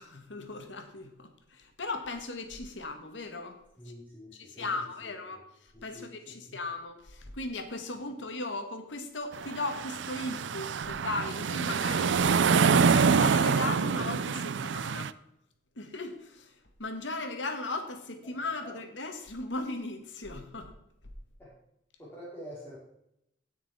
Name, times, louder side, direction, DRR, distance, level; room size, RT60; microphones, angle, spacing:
voice 1, 0.0-3.6 4.3-12.4 12.8-15.1 15.7-20.7, left 2 dB, 85° left, 6 dB, 1.7 m, -37 dB
voice 2, 3.8-5.4 5.7-6.6 18.6-18.7 21.4-21.5 22.0-22.8, equal, 10° left, -7 dB, 3.0 m, -47 dB
sound 1, 9.3-15.1, right 5 dB, 75° right, 0.5 m, -26 dB
17.0 x 6.2 x 4.3 m, 0.80 s
head